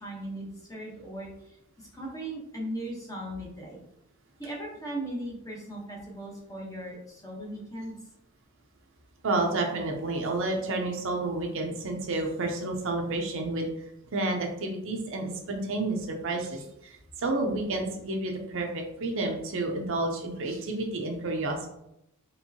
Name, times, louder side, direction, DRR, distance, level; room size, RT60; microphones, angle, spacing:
voice 1, 0.0-1.3 1.8-3.8 4.4-7.9, right 1 dB, 15° left, -2 dB, 1.0 m, -38 dB
voice 2, 9.2-21.7, right 2 dB, 60° right, 2 dB, 0.7 m, -30 dB
4.5 x 3.1 x 2.8 m, 0.82 s
head